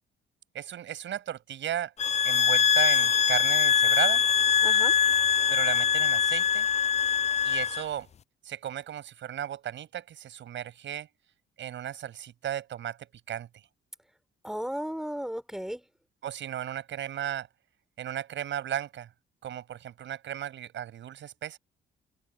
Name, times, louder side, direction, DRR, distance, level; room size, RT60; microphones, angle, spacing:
voice 1, 0.5-1.9 2.2-4.2 5.5-6.7 7.4-8.1 8.4-11.1 11.6-13.0 13.3-13.5 16.2-17.5 18.0-19.1 19.4-21.6, right 10 dB, 70° right, 7.6 m, -35 dB
sound 1, 2.0-7.8, left 7 dB, 35° left, 0.4 m, -23 dB
voice 2, 4.6-4.9 14.4-15.8, equal, ahead, 4.5 m, -34 dB
cardioid pair, 90°, 20 cm